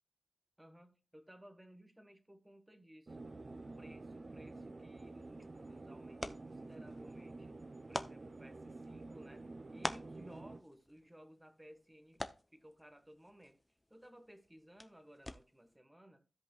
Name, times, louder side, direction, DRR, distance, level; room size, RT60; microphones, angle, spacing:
voice 1, 0.6-3.2 3.5-7.6 7.9-12.2 12.5-13.6 13.9-16.2, equal, 10° right, 7 dB, 1.4 m, -59 dB
sound 1, 3.1-10.6, right 2 dB, 40° right, 0.6 m, -49 dB
sound 2, 5.0-15.8, left 1 dB, 15° left, 0.7 m, -49 dB
16.0 x 5.3 x 2.4 m, 0.32 s
wide cardioid pair, 100°, 0 cm